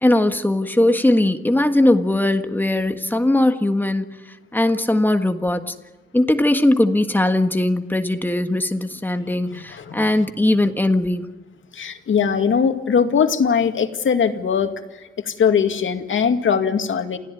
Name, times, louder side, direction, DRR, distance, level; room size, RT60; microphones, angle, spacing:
voice 1, 0.0-4.1 4.5-5.7 6.1-11.3, left 1 dB, 10° left, 7 dB, 1.6 m, -19 dB
voice 2, 9.5-10.0 11.7-14.7 15.2-17.2, left 6 dB, 85° left, 6 dB, 2.2 m, -20 dB
28.5 x 16.5 x 9.4 m, 1.2 s
wide cardioid pair, 145°, 20 cm